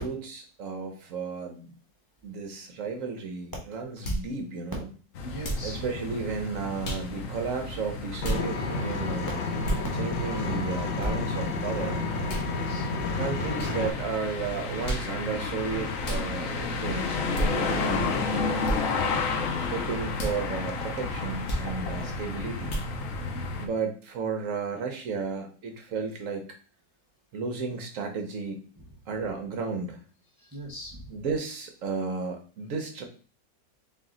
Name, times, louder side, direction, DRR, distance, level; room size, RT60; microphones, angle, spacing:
voice 1, 0.0-1.7 2.2-4.9 5.6-9.4 10.0-12.0 13.1-18.5 19.7-22.7 23.6-26.4 27.3-28.6 29.1-30.0 31.1-33.0, right 4 dB, 65° right, 4 dB, 0.8 m, -33 dB
sound 1, 4.0-4.3 5.4-5.7 6.8-7.1 8.2-8.4 9.6-9.9 11.0-11.1 12.3-12.5 13.6-13.7 14.8-15.1 16.0-16.3 17.3-17.5 18.6-18.8 20.1-20.4 21.5-21.7 22.7-22.9, right 1 dB, 50° left, 1.4 m, -30 dB
sound 2, 5.2-23.7, left 4 dB, 65° left, 0.9 m, -32 dB
voice 2, 5.2-5.8 8.9-9.1 12.4-13.1 18.9-19.2 23.2-23.4 30.4-31.1, right 1 dB, 30° right, -3 dB, 0.3 m, -41 dB
Vehicle, 8.2-13.9, left 3 dB, 80° left, 1.4 m, -31 dB
4.3 x 2.7 x 3.7 m, 0.39 s
omnidirectional pair, 2.0 m